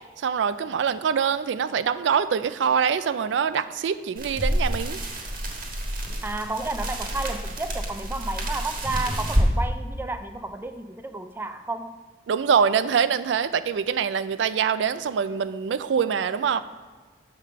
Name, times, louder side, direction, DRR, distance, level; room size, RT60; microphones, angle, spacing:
voice 1, 0.2-5.0 12.3-16.6, right 7 dB, 85° right, 13 dB, 0.3 m, -24 dB
sound 1, 4.2-9.5, right 1 dB, 55° right, 1.4 m, -28 dB
voice 2, 6.2-12.0, right 2 dB, 10° right, 8 dB, 0.3 m, -32 dB
5.9 x 4.9 x 6.4 m, 1.4 s
head